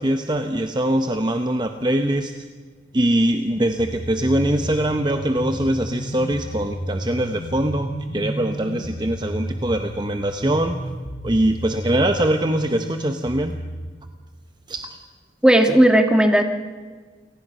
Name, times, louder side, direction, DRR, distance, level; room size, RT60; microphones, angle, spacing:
voice 1, 0.0-2.3 2.9-10.8 11.2-13.6 14.7-15.0, right 1 dB, 25° right, 6 dB, 0.8 m, -22 dB
sound 1, 3.8-13.9, equal, 45° left, 4.3 m, -32 dB
voice 2, 15.4-16.4, right 1 dB, 5° right, 5 dB, 1.5 m, -14 dB
28.0 x 18.5 x 5.6 m, 1.5 s
head